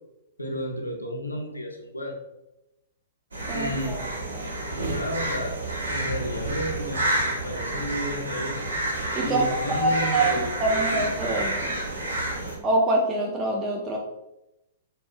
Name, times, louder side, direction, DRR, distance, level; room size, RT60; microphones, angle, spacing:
voice 1, 0.4-2.2 3.5-4.0 4.7-5.6 5.9-8.6 9.2-11.0, equal, 90° left, 2 dB, 0.5 m, -32 dB
sound 1, 3.3-12.6, right 1 dB, 80° right, 0.7 m, -29 dB
voice 2, 3.5-4.0 4.3-4.5 9.1-11.8 12.6-14.0, right 2 dB, 20° right, -2 dB, 0.4 m, -25 dB
2.5 x 2.1 x 3.3 m, 0.90 s
figure-of-eight pair, 110°, 0 cm